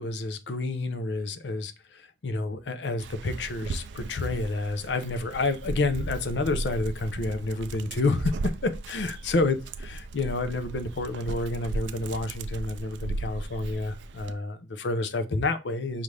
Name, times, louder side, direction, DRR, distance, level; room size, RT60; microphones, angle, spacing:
voice 1, 0.0-16.0, left 2 dB, 85° left, 0.6 m, -29 dB
Dog, 3.0-14.3, right 2 dB, 90° right, 0.4 m, -36 dB
5.5 x 2.5 x 3.2 m
head